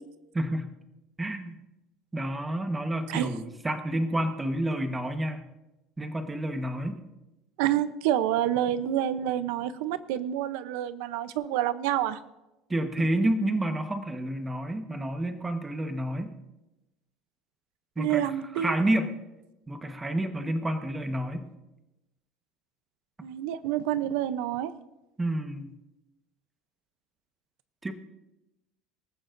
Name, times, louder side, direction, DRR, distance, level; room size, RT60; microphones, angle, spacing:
voice 1, 0.3-0.7 1.2-1.5 2.1-5.4 6.0-7.0 12.7-16.3 18.0-19.2 19.7-21.5 25.2-25.7 27.8-27.9, right 1 dB, 10° right, 6 dB, 1.2 m, -29 dB
voice 2, 7.6-12.2 13.0-13.1 18.0-18.8 23.2-24.7, right 11 dB, 80° right, 13 dB, 0.7 m, -28 dB
26.0 x 14.0 x 2.6 m, 0.98 s
cardioid pair, 150°, 0 cm